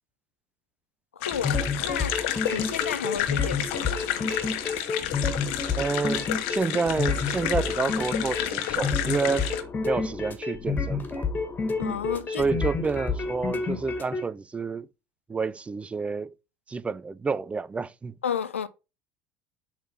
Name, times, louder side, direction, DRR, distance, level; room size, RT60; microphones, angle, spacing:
voice 1, 1.2-2.2 2.5-4.3 11.8-12.5 18.2-18.7, left 8 dB, 80° left, 0.6 m, -32 dB
sound 1, 1.2-9.6, left 12 dB, 65° left, 1.0 m, -31 dB
sound 2, 1.3-14.2, left 4 dB, 30° left, 1.8 m, -30 dB
voice 2, 5.8-9.5 9.8-11.3 12.3-14.9 15.3-16.3 16.7-18.2, right 4 dB, 20° right, 0.4 m, -29 dB
7.1 x 3.7 x 5.6 m
figure-of-eight pair, 70°, 7 cm